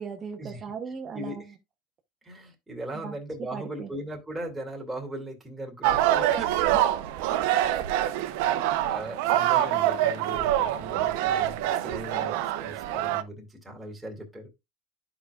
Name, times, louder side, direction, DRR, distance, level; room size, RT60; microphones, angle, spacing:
voice 1, 0.0-1.5 2.9-3.2 3.5-3.9 6.4-6.7, right 6 dB, 35° right, 0.9 m, -38 dB
voice 2, 2.2-6.3 8.1-14.5, right 1 dB, 10° right, 2.4 m, -39 dB
sound 1, 5.8-13.2, right 12 dB, 75° right, 0.7 m, -25 dB
11.5 x 5.0 x 2.4 m
supercardioid pair, 115°, 0 cm